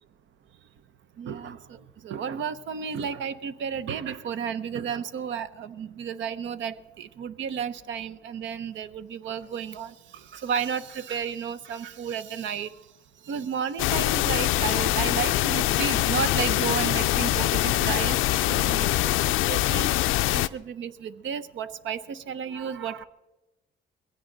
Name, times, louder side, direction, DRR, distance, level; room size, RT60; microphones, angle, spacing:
voice 1, 1.2-12.7 13.2-18.2 18.5-18.9 19.5-19.9 20.3-23.0, right 7 dB, 70° right, 14 dB, 0.8 m, -32 dB
sound 1, 13.8-20.5, left 16 dB, 90° left, 0.4 m, -24 dB
21.0 x 15.5 x 3.9 m, 1.0 s
cardioid pair, 90°, 20 cm